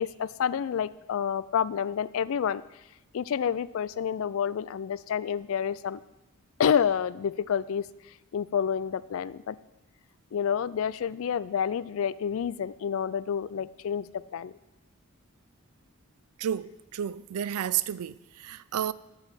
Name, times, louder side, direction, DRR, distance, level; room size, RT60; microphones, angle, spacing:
voice 1, 0.0-2.6 3.1-6.0 6.6-7.9 8.3-9.6 10.3-14.6, left 7 dB, 70° left, 0.3 m, -29 dB
voice 2, 16.4-18.9, right 10 dB, 90° right, 0.4 m, -31 dB
13.0 x 4.7 x 6.0 m
head